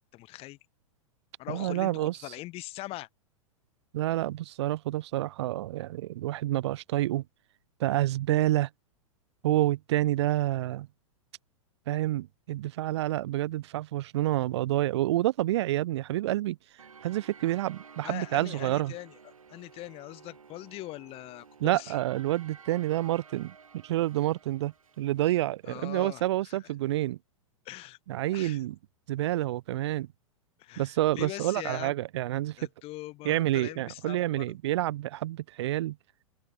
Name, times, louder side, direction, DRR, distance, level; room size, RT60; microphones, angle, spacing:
voice 1, 0.1-0.6 1.4-3.1 18.0-19.1 19.5-22.0 25.6-26.5 27.6-28.0 28.3-28.6 30.6-31.9 32.6-34.6, left 18 dB, 35° left, 2.7 m, -41 dB
voice 2, 1.5-2.2 3.9-7.2 7.8-8.7 9.4-10.9 11.9-16.6 17.0-18.9 21.6-27.2 28.1-28.7 29.1-30.1 30.8-32.6 33.2-36.0, right 15 dB, 50° right, 1.3 m, -28 dB
sound 1, 16.8-25.6, right 6 dB, 75° right, 5.1 m, -53 dB
open air
figure-of-eight pair, 100°, 18 cm